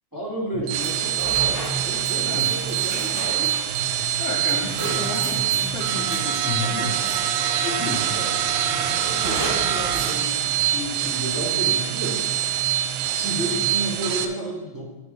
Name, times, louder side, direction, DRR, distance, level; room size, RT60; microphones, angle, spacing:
voice 1, 0.1-3.5 8.1-8.3 8.8-12.2 13.1-14.8, right 1 dB, 10° right, -9 dB, 1.1 m, -32 dB
sound 1, 0.5-14.3, right 10 dB, 80° right, 2.6 m, -24 dB
sound 2, 0.8-7.5 7.9-8.5 9.2-10.2, right 2 dB, 55° right, 3.1 m, -36 dB
voice 2, 4.2-7.0 7.6-8.2, left 4 dB, 70° left, -7 dB, 3.2 m, -31 dB
10.5 x 9.1 x 3.1 m, 1.2 s
omnidirectional pair, 4.9 m